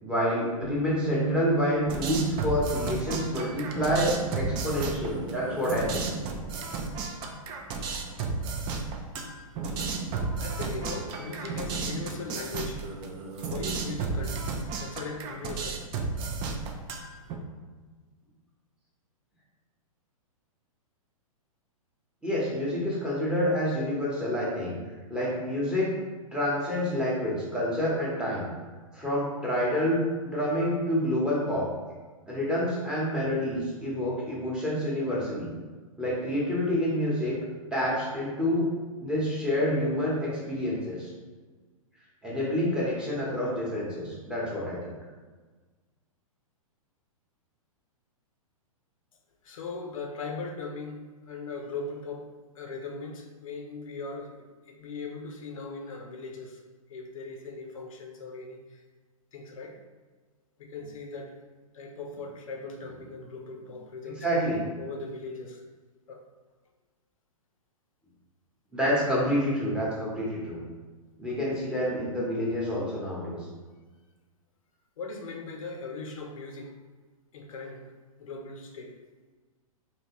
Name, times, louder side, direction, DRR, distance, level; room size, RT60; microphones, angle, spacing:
voice 1, 0.0-6.1 22.2-24.8 25.1-25.9 26.3-28.5 28.9-31.7 32.3-35.5 36.0-37.4 37.7-38.7 39.0-41.1 42.2-44.9 64.2-64.6 68.7-70.6 71.2-73.4, equal, 5° right, -6 dB, 0.9 m, -28 dB
sound 1, 0.6-7.0, right 4 dB, 75° right, 1.0 m, -37 dB
sound 2, 1.9-17.3, right 4 dB, 25° right, 0.4 m, -33 dB
voice 2, 10.1-13.2 13.5-14.5 14.8-15.8 49.4-52.3 52.5-56.6 56.9-58.8 59.3-59.8 60.6-61.3 61.7-64.3 64.8-65.6 66.1-66.2 75.0-76.7 77.3-77.9 78.2-79.0, left 3 dB, 65° left, 2 dB, 0.5 m, -39 dB
3.2 x 2.7 x 2.9 m, 1.4 s
hypercardioid pair, 120°, 18 cm